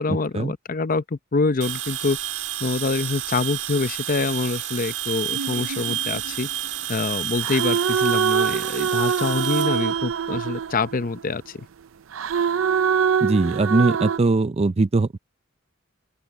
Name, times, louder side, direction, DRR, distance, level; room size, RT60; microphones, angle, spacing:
voice 1, 0.0-2.2 2.6-6.5 6.9-11.6, left 3 dB, 45° left, 0.7 m, -25 dB
sound 1, 1.6-10.9, right 11 dB, 65° right, 1.7 m, -30 dB
sound 2, 5.3-6.8 7.4-11.3 12.1-14.2, right 7 dB, 85° right, 0.5 m, -24 dB
voice 2, 13.2-15.2, right 3 dB, 30° right, 0.5 m, -20 dB
open air
head